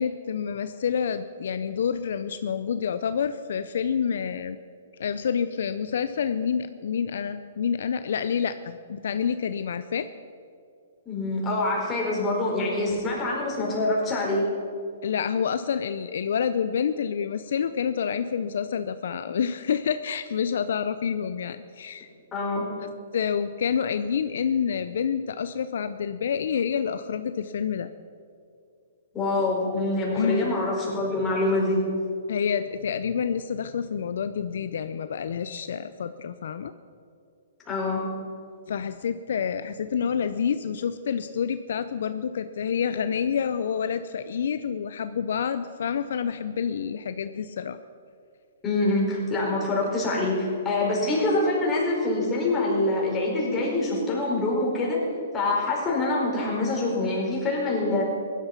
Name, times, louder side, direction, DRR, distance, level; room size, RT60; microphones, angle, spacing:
voice 1, 0.0-4.6 5.0-10.1 15.0-22.1 22.8-27.9 30.1-30.5 32.3-36.7 38.7-47.8, left 7 dB, 70° left, 11 dB, 0.5 m, -28 dB
voice 2, 11.1-14.4 22.3-22.7 29.1-31.8 37.7-38.1 48.6-55.0 55.3-58.0, left 2 dB, 20° left, -3 dB, 4.6 m, -25 dB
16.5 x 11.5 x 5.9 m, 2.4 s
hypercardioid pair, 135°, 0 cm